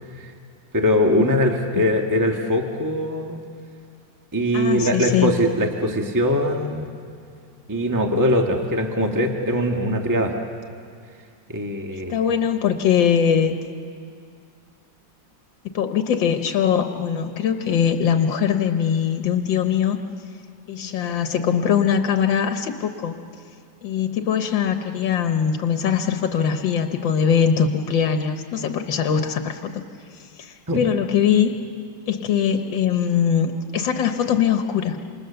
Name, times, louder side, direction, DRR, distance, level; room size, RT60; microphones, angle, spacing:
voice 1, 0.7-3.4 4.3-6.9 7.7-10.3 11.5-12.2 30.7-30.8, equal, 10° right, 2 dB, 1.5 m, -21 dB
voice 2, 4.5-5.3 12.1-13.6 15.7-20.0 20.7-23.1 23.8-29.8 30.4-31.5 32.1-35.0, left 8 dB, 85° left, 6 dB, 1.8 m, -21 dB
28.0 x 27.0 x 6.9 m, 2.2 s
omnidirectional pair, 2.0 m